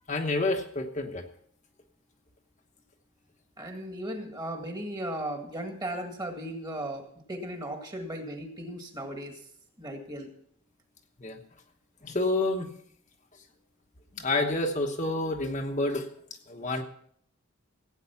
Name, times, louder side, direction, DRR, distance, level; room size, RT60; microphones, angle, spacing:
voice 1, 0.1-1.2 11.2-11.4 12.0-12.7 14.2-16.1 16.5-16.8, left 2 dB, 35° left, 2 dB, 1.2 m, -28 dB
voice 2, 3.6-9.4 9.8-10.3, right 1 dB, 20° right, 4 dB, 1.9 m, -36 dB
16.5 x 9.2 x 5.9 m, 0.64 s
head